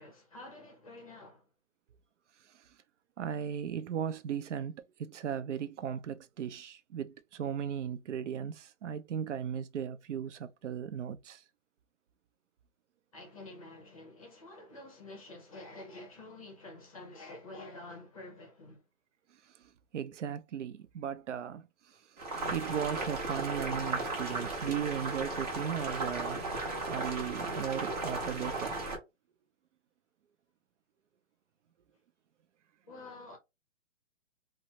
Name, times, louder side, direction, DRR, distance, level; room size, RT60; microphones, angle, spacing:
voice 1, 0.0-1.5 13.1-18.8 23.2-23.4 26.2-26.3 32.9-33.4, left 2 dB, 30° left, 0.6 m, -49 dB
voice 2, 3.2-11.4 19.9-22.0 22.5-26.5 26.9-28.8, right 8 dB, 65° right, 0.5 m, -37 dB
Boiling, 22.2-29.0, right 3 dB, 30° right, 0.9 m, -35 dB
3.1 x 2.0 x 2.7 m
hypercardioid pair, 170°, 39 cm